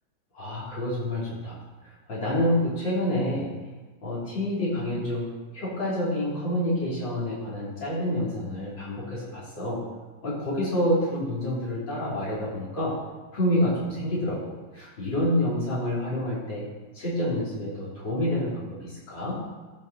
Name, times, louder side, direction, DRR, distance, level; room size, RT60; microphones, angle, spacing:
voice 1, 0.3-3.5 4.0-9.8 10.2-13.0 13.3-16.7 16.9-19.4, left 1 dB, 90° left, -7 dB, 3.8 m, -28 dB
14.0 x 5.6 x 3.9 m, 1.3 s
omnidirectional pair, 2.0 m